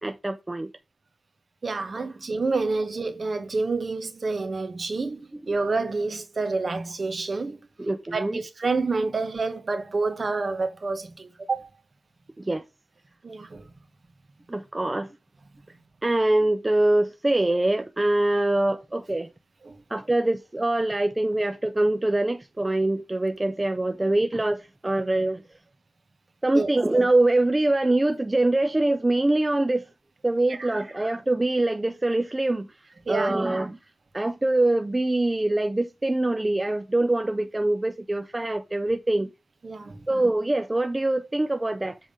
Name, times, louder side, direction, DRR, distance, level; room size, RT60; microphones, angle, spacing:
voice 1, 0.0-0.7 2.0-2.1 7.8-8.4 12.4-12.6 14.5-15.1 16.0-19.3 19.9-25.4 26.4-29.9 30.2-32.7 33.1-33.8 34.1-39.3 40.1-42.0, right 2 dB, 20° right, 0.4 m, -24 dB
voice 2, 1.6-7.6 8.1-11.7 13.2-13.6 19.7-19.8 26.5-26.7 30.5-30.7 33.1-33.4 39.6-40.0, right 3 dB, 45° right, 1.2 m, -28 dB
7.2 x 3.7 x 5.0 m
wide cardioid pair, 115°, 0 cm